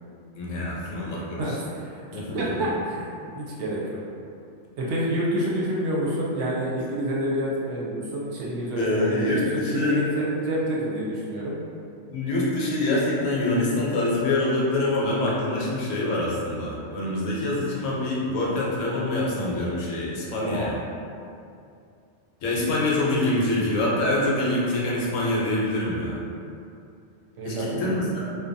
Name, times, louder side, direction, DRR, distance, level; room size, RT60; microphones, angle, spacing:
voice 1, 0.3-1.6 2.1-2.4 8.8-10.0 12.1-20.8 22.4-26.2 27.4-28.4, left 2 dB, 80° left, -5 dB, 1.0 m, -25 dB
voice 2, 1.4-4.0 4.8-11.6 20.4-20.7 27.4-27.9, equal, 70° right, -5 dB, 0.8 m, -28 dB
2.6 x 2.2 x 2.5 m, 2.5 s
omnidirectional pair, 1.3 m